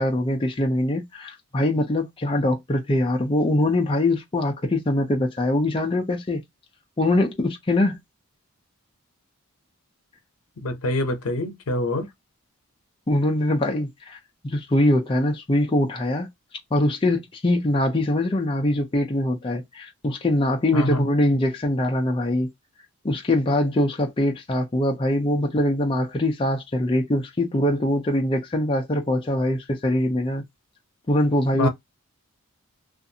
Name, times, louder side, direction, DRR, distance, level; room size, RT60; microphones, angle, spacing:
voice 1, 0.0-6.4 7.0-8.0 13.1-14.2 14.4-16.3 16.7-22.5 23.0-30.4 31.1-31.7, left 1 dB, 25° left, 0.4 m, -23 dB
voice 2, 10.6-12.1 20.7-21.0 31.5-31.7, left 1 dB, 80° left, 0.7 m, -25 dB
2.5 x 2.4 x 2.7 m
head